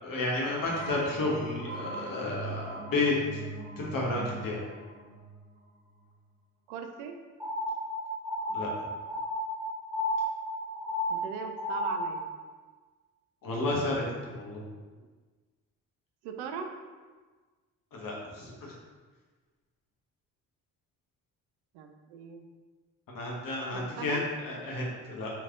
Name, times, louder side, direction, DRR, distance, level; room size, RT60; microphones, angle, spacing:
voice 1, 0.0-3.1 3.8-4.6 8.5-8.7 13.4-14.6 17.9-18.7 23.1-25.3, left 2 dB, 50° left, -3 dB, 1.3 m, -31 dB
sound 1, 0.6-6.1, right 3 dB, 45° right, 1.0 m, -41 dB
voice 2, 6.7-7.2 11.1-12.2 15.0-15.1 16.2-16.7 21.7-22.5 23.7-24.2, right 6 dB, 70° right, 5 dB, 0.5 m, -39 dB
sound 2, 7.4-12.3, equal, 5° right, 0.8 m, -33 dB
3.3 x 3.2 x 3.7 m, 1.4 s
hypercardioid pair, 45°, 41 cm